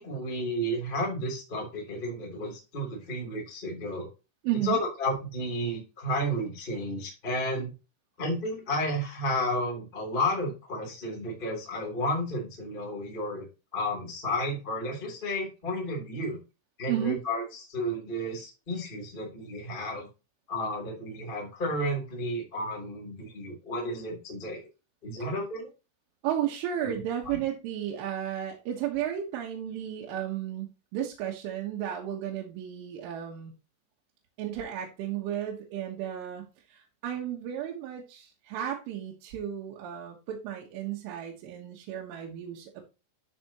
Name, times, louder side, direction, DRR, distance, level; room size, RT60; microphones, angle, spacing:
voice 1, 0.0-4.1 4.6-7.7 8.2-13.5 13.7-16.4 16.8-20.1 20.5-24.7 25.0-25.7 26.8-27.4, left 1 dB, 15° left, -2 dB, 2.5 m, -32 dB
voice 2, 4.4-4.8 16.9-17.2 26.2-33.5 34.4-42.8, right 11 dB, 75° right, 0 dB, 3.7 m, -33 dB
13.0 x 6.0 x 3.0 m, 0.30 s
omnidirectional pair, 5.9 m